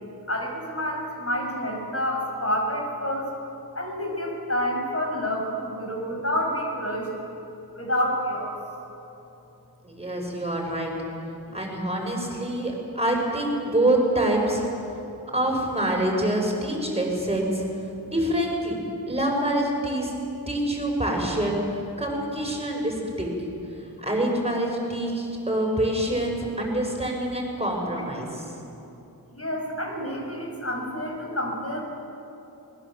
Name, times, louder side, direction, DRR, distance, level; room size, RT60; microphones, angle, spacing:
voice 1, 0.3-3.3 3.8-7.1 7.7-8.5 29.3-31.8, equal, 40° left, 0 dB, 5.4 m, -28 dB
voice 2, 9.8-10.9 11.5-14.6 15.3-17.6 18.1-18.8 19.1-20.1 20.5-23.5 24.0-28.5, right 1 dB, 15° right, 0 dB, 6.2 m, -26 dB
25.0 x 20.5 x 7.7 m, 2.9 s
wide cardioid pair, 60°, 37 cm